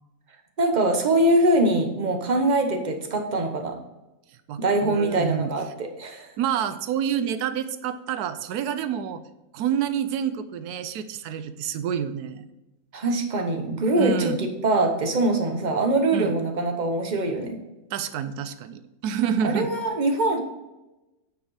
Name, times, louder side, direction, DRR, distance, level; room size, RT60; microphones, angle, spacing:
voice 1, 0.6-3.8 4.6-6.3 12.9-17.6 19.4-20.4, right 2 dB, 30° right, 4 dB, 1.1 m, -23 dB
voice 2, 4.5-5.5 6.4-9.2 9.5-12.5 14.0-14.4 16.1-16.3 17.9-19.7, right 8 dB, 85° right, 12 dB, 1.2 m, -28 dB
9.2 x 5.5 x 4.7 m, 1.0 s
omnidirectional pair, 1.6 m